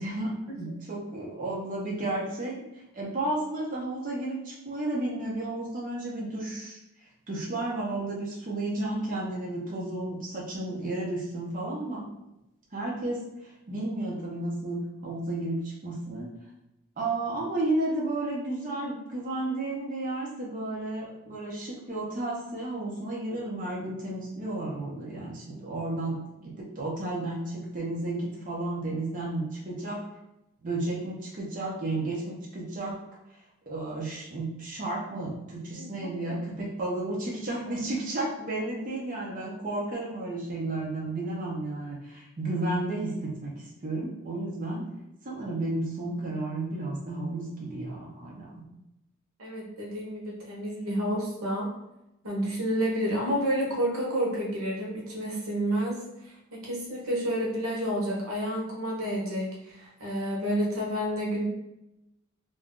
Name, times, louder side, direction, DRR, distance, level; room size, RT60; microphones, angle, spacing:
voice 1, 0.0-0.3 0.6-6.8 7.3-12.0 12.7-16.3 17.0-30.0 30.6-32.9 33.3-33.4 33.7-44.9 45.2-48.6, right 2 dB, 40° right, -4 dB, 0.7 m, -32 dB
voice 2, 35.7-36.4 49.4-51.7 52.2-61.4, equal, 85° right, -3 dB, 0.9 m, -30 dB
2.5 x 2.3 x 3.6 m, 0.90 s
head